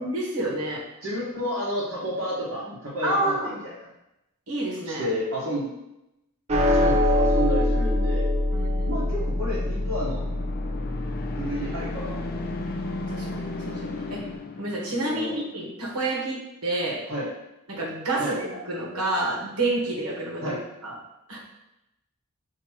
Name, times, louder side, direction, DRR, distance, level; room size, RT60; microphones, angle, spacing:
voice 1, 0.0-0.8 3.0-3.6 4.5-5.1 8.5-8.9 13.1-14.2 14.6-17.0 17.7-20.5 20.8-20.9 21.3-21.4, right 2 dB, 80° right, -4 dB, 1.3 m, -29 dB
voice 2, 1.0-3.9 4.8-5.7 6.6-8.3 8.8-10.2 11.4-12.7 14.9-15.5 17.1-17.3 18.2-18.4 20.4-20.6, equal, 60° right, -9 dB, 1.1 m, -31 dB
sound 1, 6.5-13.0, left 1 dB, 30° right, 0.5 m, -25 dB
sound 2, 8.4-15.3, left 2 dB, 45° left, 0.4 m, -35 dB
5.7 x 2.9 x 2.9 m, 0.90 s
head